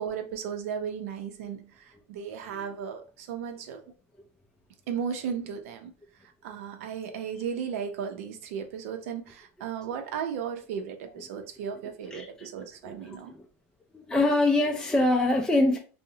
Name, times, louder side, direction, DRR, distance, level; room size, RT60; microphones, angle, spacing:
voice 1, 0.0-3.8 4.9-5.9 6.4-13.3, right 7 dB, 75° right, 0.5 m, -35 dB
voice 2, 12.1-12.5 12.8-13.5 13.9-15.8, left 2 dB, 10° left, 0.3 m, -25 dB
2.6 x 2.0 x 2.7 m
supercardioid pair, 105°, 8 cm